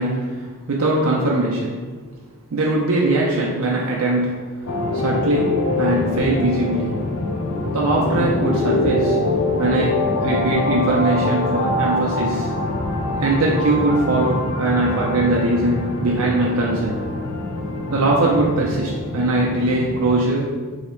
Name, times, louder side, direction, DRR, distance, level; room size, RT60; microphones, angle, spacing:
voice 1, 0.0-1.9 2.5-4.4 4.9-7.0 7.7-9.2 9.6-12.5 13.2-17.0 17.9-20.5, right 2 dB, 80° right, -3 dB, 0.5 m, -21 dB
sound 1, 4.7-20.3, left 2 dB, 75° left, 0.4 m, -24 dB
sound 2, 7.4-19.2, left 1 dB, 15° right, 0.9 m, -34 dB
3.1 x 2.8 x 4.4 m, 1.5 s
head